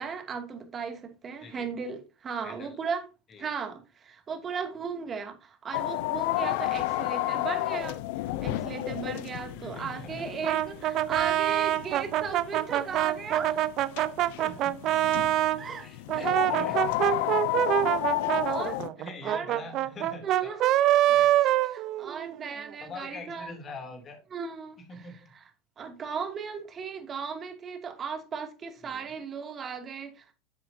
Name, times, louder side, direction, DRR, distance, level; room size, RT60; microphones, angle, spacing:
voice 1, 0.0-3.1 3.4-8.0 8.4-13.6 15.6-16.4 16.6-16.7 17.1-17.2 18.5-18.8 19.2-19.6 20.2-20.7 21.1-23.6 24.3-25.5 25.8-30.3, right 5 dB, 30° right, 2.5 m, -37 dB
sound 1, 5.7-18.9, left 17 dB, 65° left, 0.6 m, -32 dB
voice 2, 9.5-10.3 14.4-14.9 15.8-17.0 19.0-20.5 21.1-21.3 22.8-24.2 24.9-25.3 28.8-29.1, left 3 dB, 35° left, 3.0 m, -44 dB
Brass instrument, 10.4-15.6 16.1-22.4, right 13 dB, 50° right, 0.7 m, -25 dB
10.5 x 7.8 x 2.8 m
hypercardioid pair, 95°, 0 cm